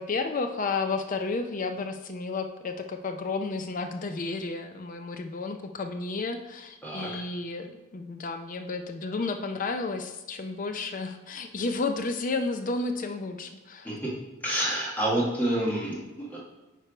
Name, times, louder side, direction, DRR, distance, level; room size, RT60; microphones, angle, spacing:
voice 1, 0.0-13.9, left 3 dB, 35° left, 7 dB, 0.4 m, -32 dB
voice 2, 14.4-16.4, right 1 dB, 10° left, -4 dB, 1.5 m, -28 dB
8.6 x 3.3 x 5.0 m, 1.2 s
head